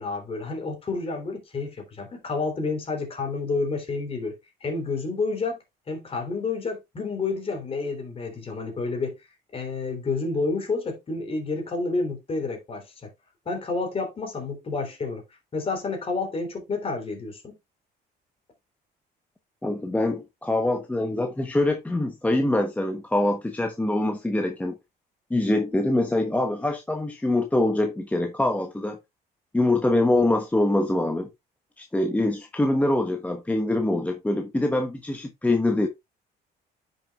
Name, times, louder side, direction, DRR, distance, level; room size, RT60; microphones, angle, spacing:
voice 1, 0.0-4.3 4.6-5.6 5.9-9.1 9.5-13.1 13.4-15.2 15.5-17.5, left 3 dB, 35° left, 3.4 m, -29 dB
voice 2, 19.6-24.7 25.3-29.0 29.5-31.3 31.8-35.9, left 1 dB, 10° left, 1.0 m, -24 dB
10.0 x 6.3 x 2.4 m
cardioid pair, 110°, 17 cm